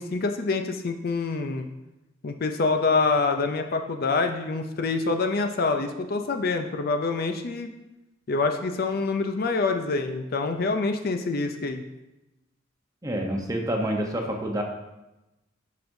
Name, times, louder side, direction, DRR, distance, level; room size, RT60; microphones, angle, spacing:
voice 1, 0.0-1.7 2.2-7.7 8.3-11.8, left 3 dB, 50° left, 6 dB, 0.5 m, -26 dB
voice 2, 13.0-14.6, right 1 dB, 15° right, 1 dB, 0.8 m, -28 dB
10.5 x 5.1 x 2.7 m, 0.98 s
head